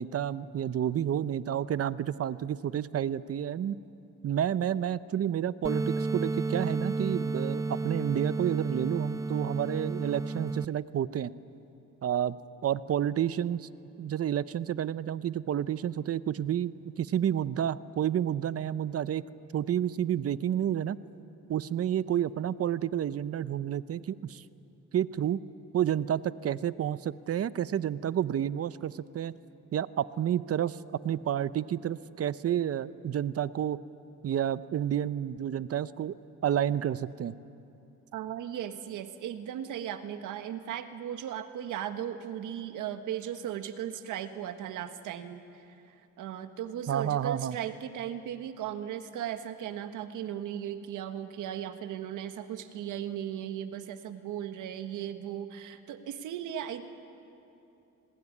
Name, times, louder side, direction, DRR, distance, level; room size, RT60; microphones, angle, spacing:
voice 1, 0.0-3.8 4.2-11.3 12.0-12.4 12.6-13.7 14.0-21.0 21.5-24.4 24.9-25.4 25.7-29.4 29.7-30.8 31.0-33.8 34.2-36.2 36.4-37.3 46.9-47.6, right 10 dB, 50° right, 16 dB, 0.8 m, -30 dB
sound 1, 5.6-10.6, right 3 dB, 10° right, 0.6 m, -32 dB
voice 2, 38.1-56.9, right 10 dB, 85° right, 9 dB, 1.6 m, -37 dB
27.0 x 19.5 x 9.8 m, 2.8 s
cardioid pair, 90°, 30 cm